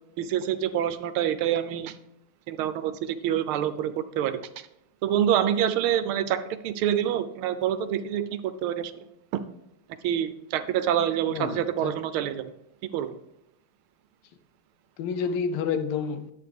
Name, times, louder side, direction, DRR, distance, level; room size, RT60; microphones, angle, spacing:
voice 1, 0.2-2.0 2.5-4.7 5.0-9.0 9.3-9.4 10.0-12.5 12.9-13.2, right 10 dB, 80° right, 1.5 m, -27 dB
voice 2, 11.3-11.9 15.0-16.3, left 6 dB, 85° left, 1.6 m, -29 dB
11.0 x 8.2 x 3.4 m
omnidirectional pair, 2.4 m